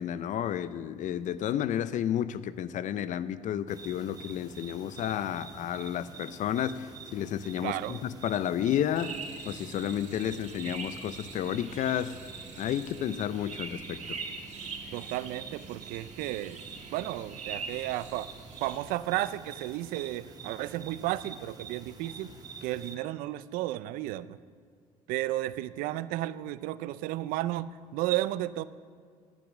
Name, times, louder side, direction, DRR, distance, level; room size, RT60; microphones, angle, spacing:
voice 1, 0.0-9.1 9.5-12.1 12.6-14.2, left 10 dB, 60° left, 15 dB, 0.6 m, -31 dB
sound 1, 3.7-22.9, right 5 dB, 25° right, 1.4 m, -47 dB
voice 2, 7.6-8.0 14.9-16.6 16.9-18.3 18.6-22.3 22.6-24.4 25.1-28.6, right 15 dB, 80° right, 17 dB, 0.4 m, -33 dB
sound 2, 8.9-18.8, right 4 dB, 55° right, 2.2 m, -43 dB
10.5 x 10.0 x 6.1 m, 2.1 s
supercardioid pair, 75°, 14 cm